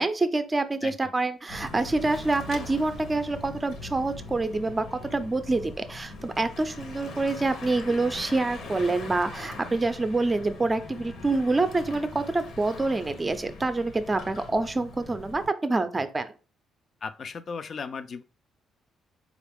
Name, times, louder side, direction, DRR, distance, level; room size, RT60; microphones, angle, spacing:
voice 1, 0.0-16.3, right 3 dB, 25° right, 10 dB, 0.5 m, -26 dB
voice 2, 0.8-1.1 17.0-18.2, left 5 dB, 45° left, 11 dB, 0.4 m, -36 dB
Bicycle / Mechanisms, 1.5-15.5, left 2 dB, 70° left, 0.9 m, -41 dB
4.2 x 2.4 x 3.5 m, 0.34 s
cardioid pair, 90°, 0 cm